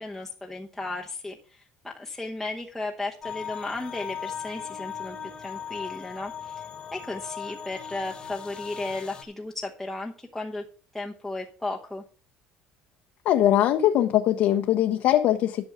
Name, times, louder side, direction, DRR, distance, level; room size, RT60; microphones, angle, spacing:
voice 1, 0.0-10.6 10.9-12.0, left 2 dB, 5° left, 1.0 m, -35 dB
sound 1, 3.2-9.2, left 8 dB, 30° left, 1.4 m, -38 dB
voice 2, 13.2-15.6, left 12 dB, 60° left, 0.9 m, -21 dB
11.0 x 6.3 x 5.6 m
cardioid pair, 140°, 3 cm